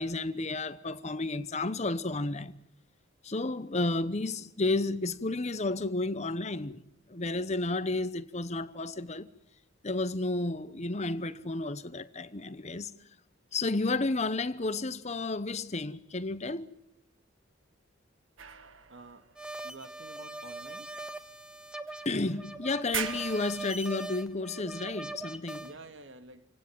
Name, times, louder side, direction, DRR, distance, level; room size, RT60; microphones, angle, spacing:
voice 1, 0.0-2.6 3.2-6.8 7.1-9.3 9.8-12.9 13.5-16.7 22.0-25.7, left 2 dB, 35° left, 1.0 m, -32 dB
sound 1, 18.4-20.3 21.1-21.2 21.9-22.5 22.8-24.4, right 8 dB, 90° right, 1.5 m, -42 dB
voice 2, 18.9-19.3 19.6-20.9 25.6-26.5, right 2 dB, 70° right, 2.2 m, -49 dB
sound 2, 19.4-25.7, right 2 dB, 5° right, 1.4 m, -41 dB
28.0 x 17.5 x 9.4 m
head